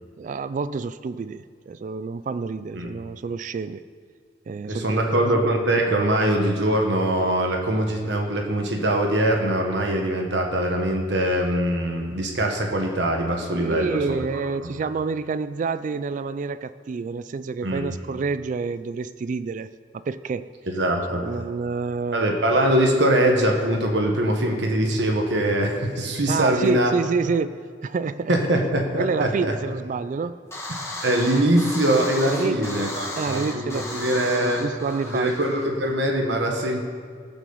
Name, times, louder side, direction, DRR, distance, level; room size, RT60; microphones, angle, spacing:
voice 1, 0.2-3.8 4.5-5.3 13.5-20.5 21.1-22.4 26.3-28.3 29.0-30.3 32.2-32.9 33.2-35.7, right 4 dB, 45° right, 14 dB, 0.3 m, -28 dB
voice 2, 4.7-14.0 17.6-17.8 20.7-21.2 22.1-26.9 28.3-29.5 31.0-33.7 34.0-34.6 35.1-36.8, right 1 dB, 65° right, 2 dB, 1.3 m, -22 dB
sound 1, 30.5-35.9, left 2 dB, 15° left, 2.1 m, -34 dB
17.0 x 6.2 x 7.0 m, 2.1 s
head